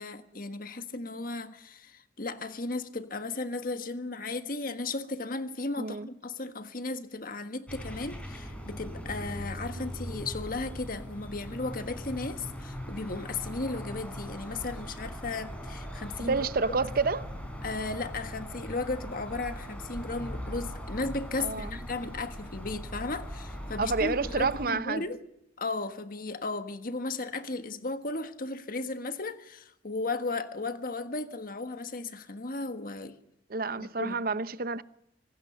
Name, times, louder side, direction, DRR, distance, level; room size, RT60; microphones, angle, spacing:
voice 1, 0.0-16.3 16.7-16.8 17.6-25.2 25.6-33.2 33.8-34.2, left 3 dB, 50° left, 1.5 m, -35 dB
voice 2, 5.8-6.1 9.8-9.9 16.3-17.3 21.4-21.8 23.8-25.0 33.5-34.8, right 4 dB, 55° right, 0.8 m, -29 dB
sound 1, 7.7-24.7, equal, 5° left, 4.5 m, -40 dB
25.5 x 18.5 x 7.0 m
head